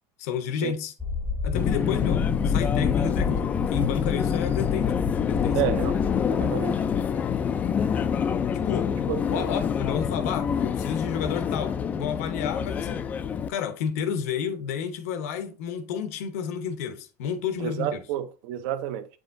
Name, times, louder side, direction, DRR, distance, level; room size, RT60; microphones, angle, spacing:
voice 1, 0.2-0.9 1.4-3.5 3.7-5.6 8.7-8.9 9.3-13.1 13.5-18.1, left 7 dB, 75° left, 0.9 m, -31 dB
sound 1, 1.0-6.4, left 5 dB, ahead, 0.7 m, -30 dB
Subway metro underground, 1.5-13.5, left 7 dB, 20° left, 0.3 m, -26 dB
voice 2, 5.5-6.0 6.3-6.8 9.1-9.5 17.6-19.1, right 11 dB, 60° right, 0.7 m, -30 dB
7.8 x 4.9 x 2.6 m
supercardioid pair, 160°, 8 cm